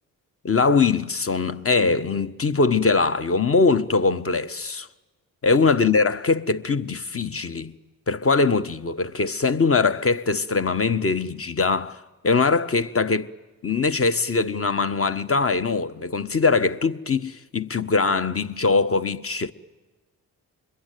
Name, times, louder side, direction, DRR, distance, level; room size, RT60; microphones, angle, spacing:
voice 1, 0.4-4.9 5.4-7.7 8.1-13.3 13.6-19.5, left 4 dB, 35° left, 1.2 m, -22 dB
26.5 x 22.0 x 9.2 m
supercardioid pair, 50°, 41 cm